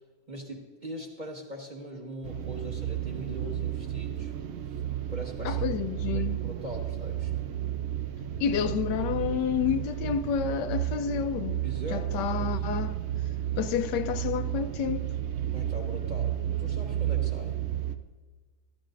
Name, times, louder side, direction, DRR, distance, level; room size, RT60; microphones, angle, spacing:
voice 1, 0.3-4.3 4.7-5.7 6.1-7.3 8.5-8.7 9.1-9.3 11.6-12.1 12.4-12.6 15.5-17.6, right 1 dB, 30° right, 1.3 m, -41 dB
sound 1, 2.2-18.0, right 11 dB, 85° right, 0.5 m, -32 dB
voice 2, 5.4-6.4 8.4-11.6 11.9-13.0 13.6-15.1, left 8 dB, 90° left, 1.3 m, -29 dB
15.0 x 13.0 x 2.5 m
omnidirectional pair, 1.8 m